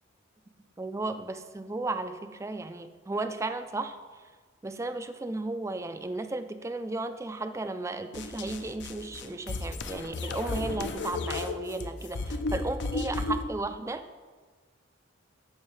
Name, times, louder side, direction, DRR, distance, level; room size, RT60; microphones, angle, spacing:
voice 1, 0.8-4.0 4.6-14.0, right 2 dB, 15° right, 9 dB, 0.3 m, -34 dB
sound 1, 8.1-13.5, left 3 dB, 60° left, 0.5 m, -34 dB
13.5 x 5.5 x 3.2 m, 1.4 s
head